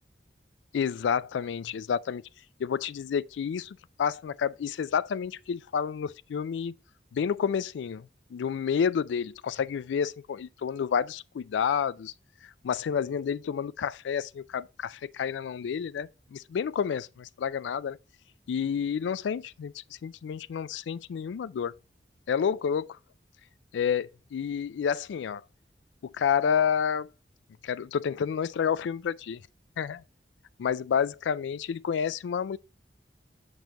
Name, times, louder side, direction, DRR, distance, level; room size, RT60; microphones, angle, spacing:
voice 1, 0.7-2.2 2.6-6.7 7.1-12.1 12.4-18.0 18.5-21.7 22.3-23.0 23.7-25.4 26.0-27.1 27.6-29.4 29.8-30.0 30.6-32.6, left 7 dB, 85° left, 0.3 m, -29 dB
7.5 x 5.3 x 2.8 m
head